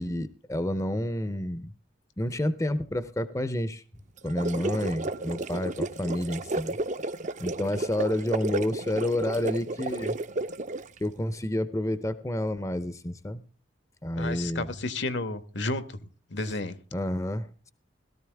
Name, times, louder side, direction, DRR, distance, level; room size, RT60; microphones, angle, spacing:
voice 1, 0.0-1.7 2.2-3.8 4.2-6.8 7.4-10.2 11.0-13.4 14.0-14.7 16.9-17.7, left 1 dB, 15° left, 13 dB, 0.7 m, -29 dB
sound 1, 4.2-11.0, right 2 dB, 40° right, 0.7 m, -32 dB
voice 2, 14.2-16.7, left 2 dB, 70° left, 12 dB, 1.4 m, -32 dB
17.0 x 13.5 x 3.5 m, 0.35 s
head